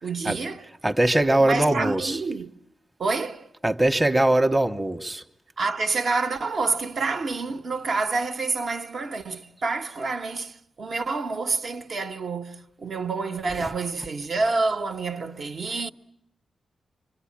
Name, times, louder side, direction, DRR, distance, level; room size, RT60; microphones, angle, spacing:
voice 1, 0.0-0.7 1.4-2.5 3.0-3.5 5.6-15.9, right 3 dB, 50° right, 1.1 m, -28 dB
voice 2, 0.8-2.2 3.6-5.2, right 1 dB, 10° right, 1.0 m, -21 dB
25.5 x 25.5 x 8.7 m
wide cardioid pair, 155°, 0 cm